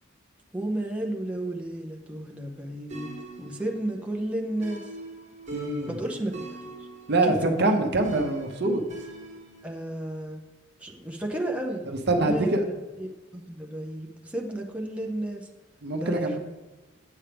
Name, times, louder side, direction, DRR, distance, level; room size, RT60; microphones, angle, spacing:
voice 1, 0.5-4.9 5.9-6.3 7.3-7.6 9.6-10.4 10.8-11.8 12.2-15.5 16.0-16.4, right 1 dB, 5° right, 1 dB, 0.7 m, -32 dB
sound 1, 2.9-9.7, right 1 dB, 35° right, 1.3 m, -42 dB
voice 2, 5.5-5.9 7.1-8.8 11.9-12.6 15.8-16.4, right 2 dB, 60° right, 4 dB, 0.8 m, -24 dB
8.8 x 7.2 x 3.4 m, 1.2 s
head